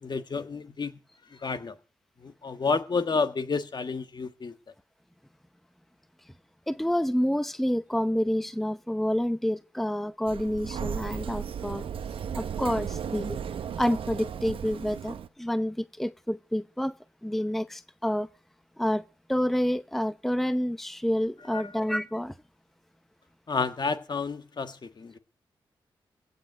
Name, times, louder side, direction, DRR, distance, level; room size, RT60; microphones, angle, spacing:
voice 1, 0.0-0.9 1.3-1.8 2.2-4.5 21.5-21.7 23.5-25.2, left 4 dB, 50° left, 1.4 m, -30 dB
voice 2, 6.7-11.8 12.3-13.4 13.8-16.9 17.2-18.3 18.8-19.0 19.3-22.3, equal, 5° left, 0.8 m, -28 dB
Sliding door, 10.3-15.3, right 8 dB, 75° right, 0.9 m, -35 dB
16.5 x 5.6 x 9.2 m
cardioid pair, 50°, 9 cm